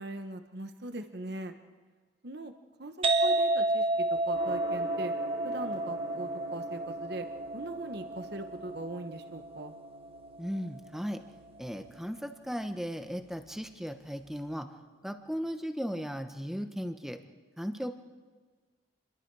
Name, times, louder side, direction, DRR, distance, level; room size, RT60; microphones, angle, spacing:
voice 1, 0.0-1.5 2.2-2.5 2.8-5.1 5.4-7.3 7.5-9.8, right 2 dB, 55° right, 7 dB, 1.1 m, -40 dB
sound 1, 3.0-10.5, right 2 dB, 30° right, 1.0 m, -31 dB
Gong, 4.3-15.2, right 2 dB, 80° right, 6.5 m, -48 dB
voice 2, 10.4-11.2 11.6-14.7 15.0-17.2 17.6-17.9, equal, ahead, 7 dB, 1.0 m, -36 dB
28.0 x 22.0 x 4.8 m, 1.4 s
head